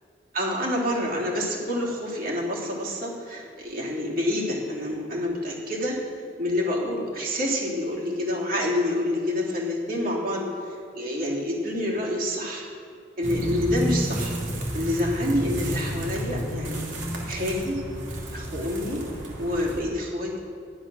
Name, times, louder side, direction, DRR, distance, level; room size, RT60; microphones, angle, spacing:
voice 1, 0.3-6.0 6.4-12.6 13.2-14.4 14.7-16.8 17.3-17.8 18.3-19.0 19.4-20.4, left 1 dB, 50° right, -4 dB, 3.2 m, -27 dB
sound 1, 13.2-19.8, equal, 80° right, 2.8 m, -31 dB
13.0 x 11.0 x 6.3 m, 2.5 s
head